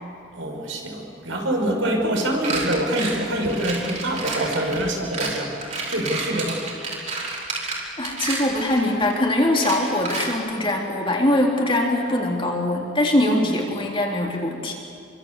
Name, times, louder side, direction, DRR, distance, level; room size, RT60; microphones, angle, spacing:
voice 1, 0.3-5.6 5.8-6.6 13.2-13.5, right 1 dB, 70° right, 1 dB, 5.9 m, -25 dB
sound 1, 2.4-9.1 9.5-10.3, right 3 dB, 35° right, 4.9 m, -30 dB
voice 2, 8.0-14.7, left 1 dB, 25° left, -1 dB, 3.7 m, -22 dB
29.0 x 24.5 x 8.4 m, 2.5 s
head